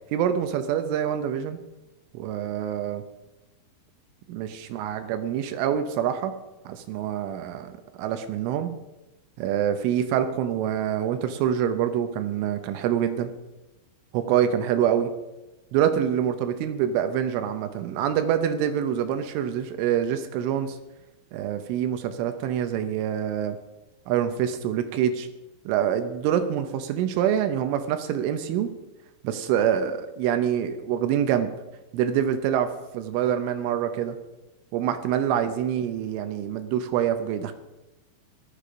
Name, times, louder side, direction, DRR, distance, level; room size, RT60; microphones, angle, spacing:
voice 1, 0.1-1.6 2.1-3.0 4.3-6.3 6.7-8.7 9.4-13.3 14.1-15.1 15.7-20.8 21.3-23.6 24.1-25.3 25.7-28.7 29.2-31.5 31.9-34.2 34.7-37.5, right 9 dB, 80° right, 9 dB, 3.2 m, -26 dB
15.0 x 12.0 x 5.1 m, 1.0 s
omnidirectional pair, 5.7 m